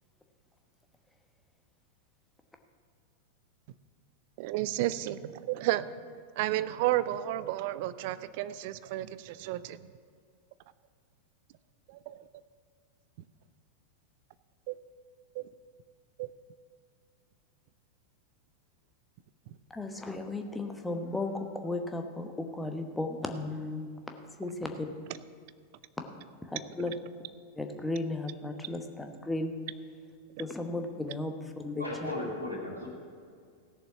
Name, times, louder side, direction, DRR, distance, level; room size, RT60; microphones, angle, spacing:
voice 1, 4.4-5.9 6.4-9.8 12.1-12.2 14.7-14.8 15.4-15.5 16.2-16.3 25.1-25.2 26.9-27.0 31.0-31.1, right 15 dB, 50° right, 15 dB, 0.4 m, -32 dB
voice 2, 19.7-24.9 26.4-27.0 27.6-29.5 30.4-32.1, left 2 dB, 5° left, 5 dB, 1.1 m, -35 dB
voice 3, 31.8-32.9, left 1 dB, 90° left, -9 dB, 2.3 m, -36 dB
16.0 x 6.9 x 5.7 m, 2.2 s
figure-of-eight pair, 90°, 0 cm